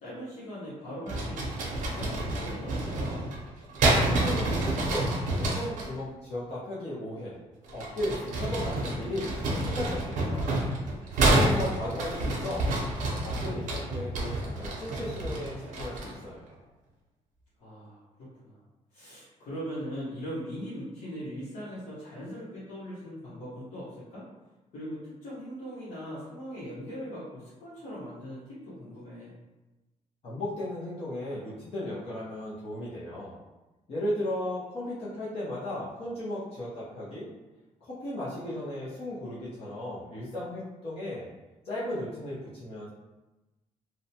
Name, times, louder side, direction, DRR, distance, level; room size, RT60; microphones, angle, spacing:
voice 1, 0.0-3.2 17.6-18.0 18.4-18.6 18.9-24.2 24.7-29.3, equal, 70° left, -10 dB, 1.0 m, -40 dB
sound 1, 1.1-5.9 7.6-16.2, right 2 dB, 80° right, 0.6 m, -29 dB
voice 2, 4.1-7.4 7.7-10.5 11.1-12.8 13.2-16.5 30.2-33.4 33.9-37.3 37.8-41.3 41.6-42.9, left 1 dB, 50° left, -9 dB, 0.6 m, -36 dB
2.7 x 2.1 x 2.7 m, 1.1 s
cardioid pair, 160°, 13 cm